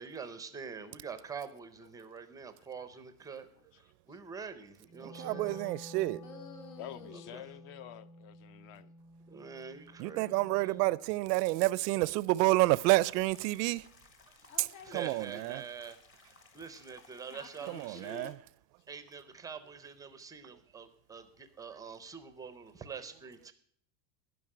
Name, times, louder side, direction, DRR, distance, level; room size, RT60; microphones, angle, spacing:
voice 1, 0.0-3.5 3.8-5.6 7.3-7.5 9.3-10.4 14.3-14.4 14.9-18.2 18.9-23.5, right 6 dB, 10° right, 0.4 m, -45 dB
Wind instrument woodwind instrument, 4.8-11.0, left 1 dB, 60° left, 3.2 m, -52 dB
voice 2, 5.0-6.2 10.0-13.9 14.9-15.6 17.7-18.3, right 19 dB, 90° right, 0.5 m, -29 dB
voice 3, 6.1-7.3 14.4-15.6 17.3-18.4, left 5 dB, 80° left, 2.0 m, -51 dB
voice 4, 6.8-8.9, left 11 dB, 45° left, 0.5 m, -48 dB
sound 1, 12.6-18.3, left 4 dB, 25° left, 1.0 m, -61 dB
11.0 x 5.3 x 8.6 m
supercardioid pair, 145°, 47 cm